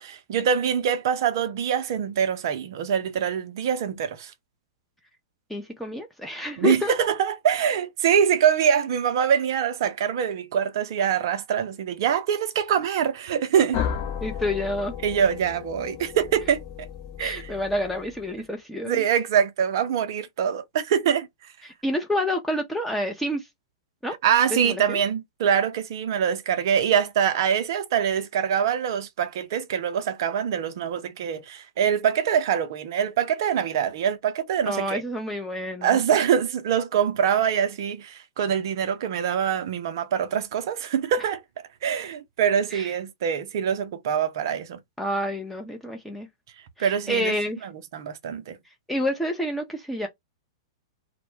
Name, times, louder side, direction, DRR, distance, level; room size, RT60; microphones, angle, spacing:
voice 1, 0.0-4.3 6.6-13.8 15.0-16.6 17.2-17.5 18.8-21.3 24.2-35.0 35.8-41.4 41.8-44.8 46.8-47.3 47.6-48.6, right 8 dB, 60° right, 0.4 m, -24 dB
voice 2, 5.5-6.9 14.2-14.9 17.2-19.0 21.6-23.5 24.0-24.1 24.5-25.0 34.7-36.0 42.7-42.9 45.0-46.3 46.8-47.7 48.9-50.1, left 1 dB, 5° left, 0.5 m, -28 dB
sound 1, 13.7-18.4, left 8 dB, 40° left, 0.8 m, -34 dB
2.1 x 2.0 x 3.1 m
hypercardioid pair, 110°, 2 cm